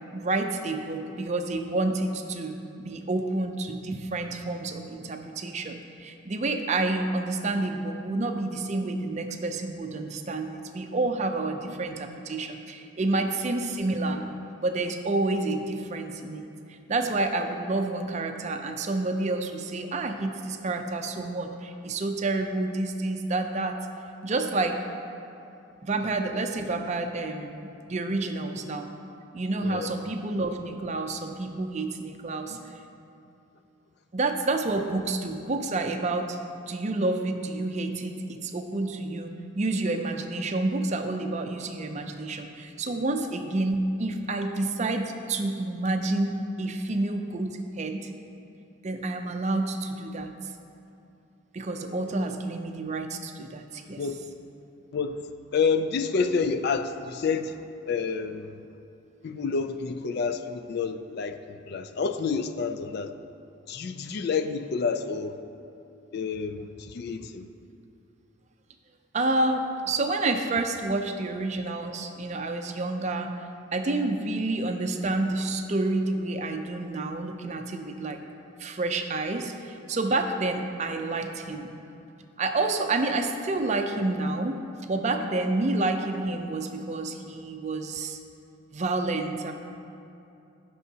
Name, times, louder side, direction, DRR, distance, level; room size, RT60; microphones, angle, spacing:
voice 1, 0.1-14.2 14.6-16.5 16.9-23.8 24.2-24.8 25.8-28.9 29.3-32.6 34.1-36.4 36.7-48.1 48.8-50.3 51.5-54.0 69.1-73.4 73.7-78.2 78.6-81.7 82.4-84.6 84.9-88.2 88.7-89.5, right 2 dB, 35° right, 5 dB, 0.5 m, -29 dB
voice 2, 54.9-55.2 55.5-57.6 57.9-58.5 59.2-61.4 61.7-63.1 63.7-65.4 66.1-67.4, left 5 dB, 50° left, 9 dB, 0.3 m, -28 dB
15.0 x 6.2 x 2.8 m, 2.7 s
head